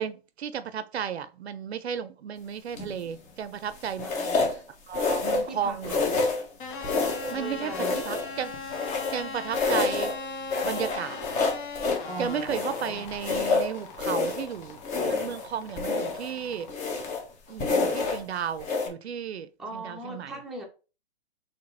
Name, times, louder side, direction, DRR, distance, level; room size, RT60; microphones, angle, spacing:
voice 1, 0.0-4.1 4.9-6.0 7.3-7.7 8.1-8.5 9.1-10.1 10.6-11.2 12.2-14.8 15.1-16.7 17.5-20.3, right 8 dB, 70° right, 0.6 m, -33 dB
sound 1, 2.8-3.1 4.0-4.6 4.9-5.5 5.8-6.5 6.8-7.4 7.7-9.2 9.5-10.2 10.5-12.1 12.5-14.5 14.8-15.5 15.8-16.3 16.7-17.3 17.6-18.2 18.6-18.9, left 4 dB, 20° left, 1.1 m, -28 dB
voice 2, 4.0-4.5 5.4-6.1 7.3-8.0 12.1-13.0 19.6-20.7, right 1 dB, ahead, 0.8 m, -40 dB
sound 2, 6.6-16.7, left 4 dB, 45° left, 1.5 m, -39 dB
4.0 x 3.4 x 3.3 m
hypercardioid pair, 130°, 33 cm